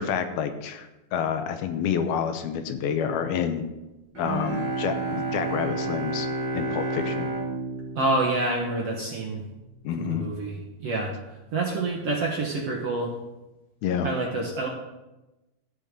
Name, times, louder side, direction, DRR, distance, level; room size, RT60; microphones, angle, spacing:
voice 1, 0.0-3.7 4.2-6.3 6.5-7.3 9.8-10.3 13.8-14.1, left 7 dB, 80° left, 8 dB, 2.7 m, -28 dB
Bowed string instrument, 4.1-9.3, right 2 dB, 35° right, 2.7 m, -31 dB
voice 2, 7.9-9.4 10.0-13.1 14.0-14.7, right 2 dB, 60° right, -1 dB, 1.6 m, -28 dB
13.5 x 9.4 x 3.8 m, 1.0 s
omnidirectional pair, 4.3 m